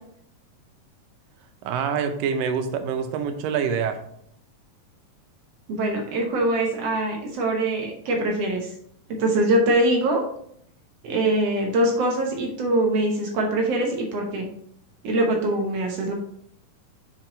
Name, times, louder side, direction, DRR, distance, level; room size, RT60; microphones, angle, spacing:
voice 1, 1.6-4.0, right 7 dB, 85° right, 7 dB, 2.4 m, -26 dB
voice 2, 5.7-8.7 9.2-10.2 11.0-14.5 15.0-16.1, right 1 dB, 65° right, 1 dB, 1.6 m, -23 dB
6.4 x 4.5 x 3.8 m, 0.67 s
omnidirectional pair, 3.9 m